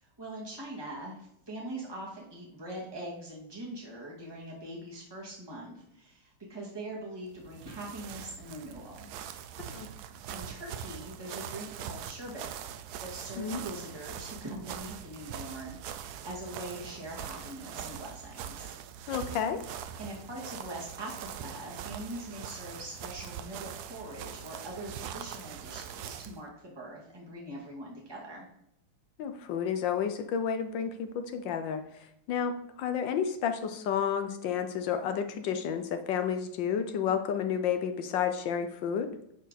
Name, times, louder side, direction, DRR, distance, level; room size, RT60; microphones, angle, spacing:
voice 1, 0.0-9.1 10.3-12.5 13.0-18.7 20.0-28.5, right 1 dB, 10° right, -3 dB, 2.0 m, -42 dB
sound 1, 7.3-26.4, right 9 dB, 80° right, 0.8 m, -42 dB
voice 2, 19.1-19.6 29.2-31.8 32.3-39.1, left 7 dB, 70° left, 8 dB, 1.3 m, -31 dB
10.0 x 4.5 x 4.1 m, 0.76 s
omnidirectional pair, 2.3 m